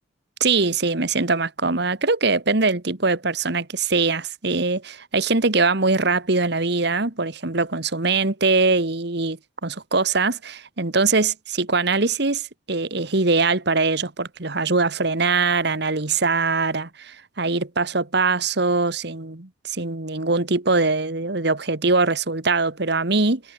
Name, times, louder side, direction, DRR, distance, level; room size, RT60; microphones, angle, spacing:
voice 1, 0.4-23.4, right 3 dB, 60° right, 1.7 m, -22 dB
head